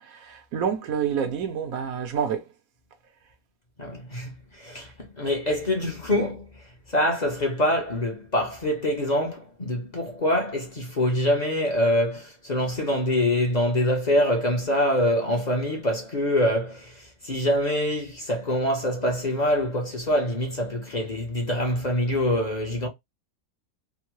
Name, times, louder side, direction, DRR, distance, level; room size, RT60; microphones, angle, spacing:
voice 1, 0.0-2.5, right 7 dB, 80° right, 1.2 m, -28 dB
voice 2, 3.8-6.5 6.9-22.9, left 1 dB, 35° left, 0.8 m, -25 dB
3.6 x 2.0 x 3.0 m
omnidirectional pair, 1.5 m